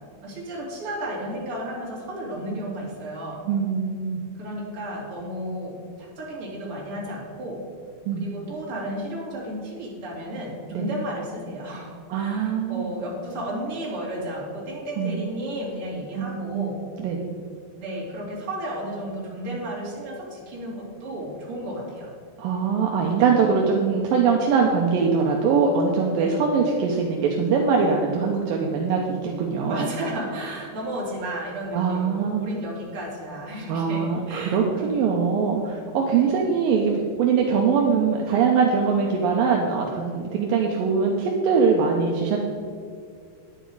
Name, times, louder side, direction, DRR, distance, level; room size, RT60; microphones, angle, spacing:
voice 1, 0.2-3.4 4.3-7.6 8.2-16.8 17.8-22.1 26.2-26.4 29.7-34.7 36.2-36.3, right 1 dB, 35° right, -5 dB, 3.3 m, -33 dB
voice 2, 3.5-4.2 8.1-8.3 10.7-10.9 12.1-12.9 15.0-15.2 16.2-17.2 22.4-29.9 31.7-32.5 33.7-42.4, right 5 dB, 75° right, 0 dB, 2.2 m, -22 dB
10.5 x 9.3 x 4.8 m, 2.2 s
omnidirectional pair, 5.0 m